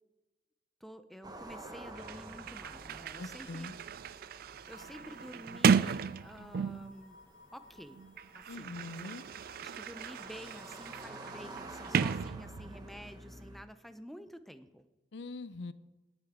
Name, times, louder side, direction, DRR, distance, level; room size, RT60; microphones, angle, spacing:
voice 1, 0.8-3.7 4.7-7.2 7.5-8.0 8.3-8.8 9.6-14.9, equal, ahead, 9 dB, 0.6 m, -50 dB
sound 1, 1.2-13.6, right 1 dB, 20° right, 1.0 m, -50 dB
Sliding door, 1.6-1.7 2.0-7.0 7.9-12.9, right 6 dB, 50° right, 0.3 m, -34 dB
voice 2, 3.2-3.7 8.5-9.2 15.1-15.7, left 3 dB, 65° left, 14 dB, 0.6 m, -42 dB
sound 2, 4.6-11.1, left 2 dB, 50° left, 1.7 m, -60 dB
18.0 x 9.0 x 3.7 m, 1.1 s
head